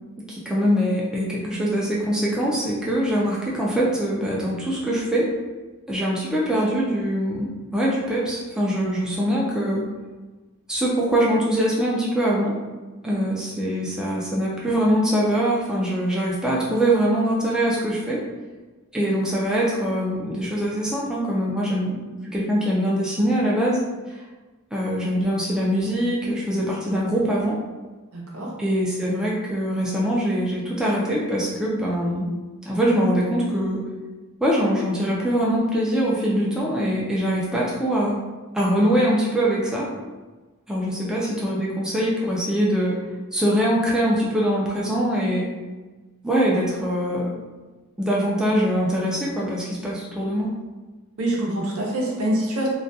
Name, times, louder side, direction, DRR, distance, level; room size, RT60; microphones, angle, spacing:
voice 1, 0.3-5.3 5.9-9.8 10.7-12.5 13.0-18.2 18.9-23.8 24.7-27.6 28.6-32.3 32.7-33.8 34.4-38.2 38.5-39.9 40.7-43.0 43.3-45.5 46.2-47.3 48.0-50.5, equal, 5° right, -6 dB, 0.3 m, -23 dB
voice 2, 28.1-28.5 51.2-52.7, right 1 dB, 80° right, -3 dB, 0.6 m, -25 dB
2.3 x 2.1 x 2.6 m, 1.3 s
head